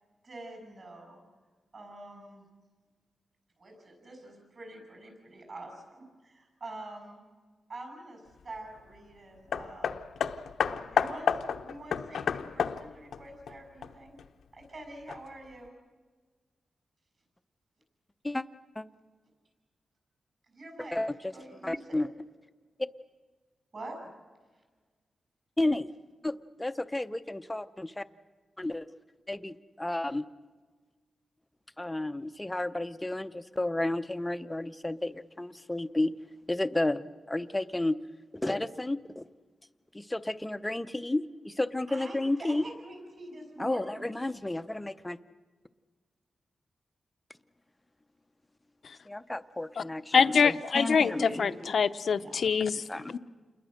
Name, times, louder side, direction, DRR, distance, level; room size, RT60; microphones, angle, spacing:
voice 1, 0.2-1.2 1.7-2.4 3.6-7.2 7.7-10.0 10.6-14.2 14.5-15.7 20.5-21.0 21.3-22.0 23.7-24.0 41.9-44.1 50.9-51.6 52.2-52.4, right 2 dB, 40° right, 3 dB, 6.4 m, -46 dB
Hammer, 9.5-14.2 15.1-15.2, left 7 dB, 90° left, 0.9 m, -31 dB
voice 2, 20.9-21.3 21.6-22.1 25.6-25.9 26.2-28.0 28.6-28.9 29.3-30.3 31.8-36.1 36.5-38.0 38.3-39.3 39.9-42.6 43.6-45.2 49.1-51.4 52.9-53.1, left 1 dB, 10° left, 12 dB, 0.6 m, -32 dB
voice 3, 50.1-52.8 53.1-53.2, left 6 dB, 55° left, 12 dB, 0.7 m, -25 dB
28.5 x 21.5 x 6.5 m, 1.4 s
wide cardioid pair, 175°, 0 cm